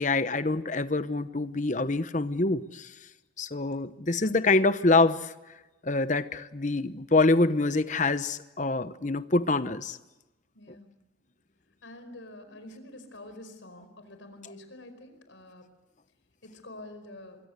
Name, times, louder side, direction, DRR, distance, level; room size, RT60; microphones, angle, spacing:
voice 1, 0.0-2.9 3.4-5.3 5.8-10.0 14.4-14.5, left 3 dB, 40° left, 0.9 m, -25 dB
voice 2, 10.5-10.9 11.8-15.6 16.4-17.4, left 1 dB, 80° left, 5.1 m, -47 dB
24.5 x 23.5 x 8.2 m
head